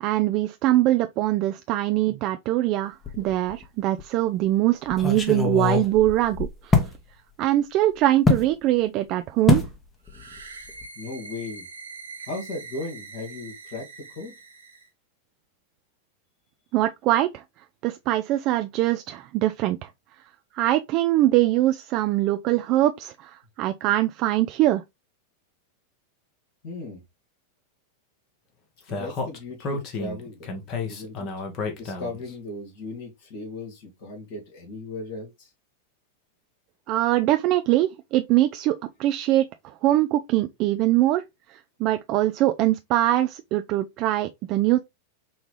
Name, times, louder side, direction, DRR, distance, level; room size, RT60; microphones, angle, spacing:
voice 1, 0.0-6.8 7.4-9.6 16.7-17.3 17.8-19.8 20.6-23.3 23.6-24.8 36.9-39.5 39.8-41.2 41.8-44.8, right 15 dB, 45° right, 0.4 m, -22 dB
sound 1, 3.0-3.6 4.0-4.1 4.9-6.9 8.2-8.5 9.5-9.7 10.1-10.4 10.7-10.8, left 3 dB, 20° left, 1.0 m, -23 dB
sound 2, 10.1-14.9, right 4 dB, 85° right, 0.9 m, -43 dB
voice 2, 11.0-11.7 12.3-14.3 26.6-27.0 28.9-30.5 30.8-31.3 31.8-35.5, left 2 dB, 60° left, 1.9 m, -36 dB
Speech, 28.9-32.3, left 3 dB, 40° left, 1.2 m, -31 dB
5.4 x 2.3 x 3.1 m
hypercardioid pair, 95°, 0 cm